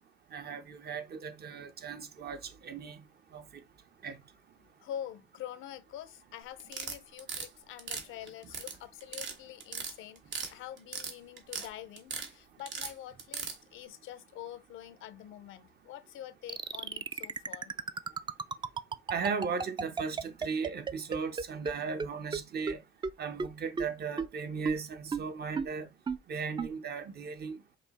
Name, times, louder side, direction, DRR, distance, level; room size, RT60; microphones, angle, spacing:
voice 1, 0.3-3.0 3.3-3.4 4.0-4.2 19.1-22.8 23.2-25.9 26.3-27.6, right 5 dB, 55° right, 0.8 m, -37 dB
voice 2, 4.8-17.8, left 11 dB, 85° left, 0.5 m, -46 dB
sound 1, 6.6-7.5 7.8-8.7 9.0-9.3 9.6-10.5 10.8-11.7 12.0-12.3 12.7-13.5, right 6 dB, 70° right, 1.2 m, -37 dB
sound 2, 16.5-21.7 22.0-22.1 22.3-22.4 22.7-22.8 23.0-23.1 23.4-23.5 23.8-23.9 24.2-24.3 24.7-24.8 25.1-25.2 25.6-25.7 26.1-26.2 26.6-26.7, right 5 dB, 25° right, 0.3 m, -32 dB
5.3 x 2.0 x 4.1 m
cardioid pair, 90°, 20 cm